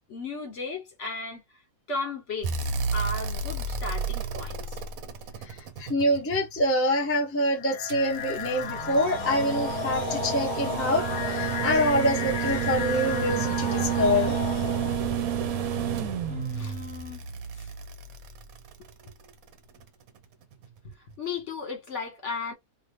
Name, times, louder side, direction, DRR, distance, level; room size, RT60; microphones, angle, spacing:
voice 1, 0.1-1.4 1.9-4.8 16.3-17.2 17.5-17.7 20.8-22.5, left 4 dB, 50° left, 1.5 m, -35 dB
sound 1, 2.4-6.6 7.9-19.1 20.6-20.7, right 7 dB, 65° right, 1.1 m, -31 dB
voice 2, 5.4-14.4, left 1 dB, 15° left, 0.5 m, -26 dB
sound 2, 7.6-15.2, left 8 dB, 75° left, 1.1 m, -34 dB
2.8 x 2.7 x 3.1 m
omnidirectional pair, 1.7 m